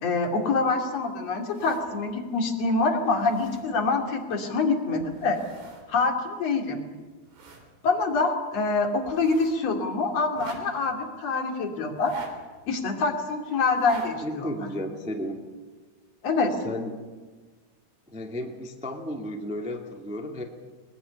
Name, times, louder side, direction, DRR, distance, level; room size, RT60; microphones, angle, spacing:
voice 1, 0.0-5.4 5.9-6.8 7.8-12.1 12.7-14.2 14.6-14.7 16.2-16.5, left 3 dB, 45° left, 2 dB, 3.7 m, -25 dB
sound 1, 1.4-2.1 2.6-2.7 3.0-4.0 5.0-5.9 6.2-6.3 6.8-7.7 8.0-8.1 9.0-9.6 10.3-11.0 11.9-12.7 13.6-14.2 14.5-14.6, right 3 dB, 75° right, 5.2 m, -43 dB
voice 2, 14.2-15.4 16.5-17.0 18.1-20.4, left 1 dB, 5° right, 2 dB, 1.2 m, -33 dB
21.0 x 21.0 x 10.0 m, 1.4 s
omnidirectional pair, 4.5 m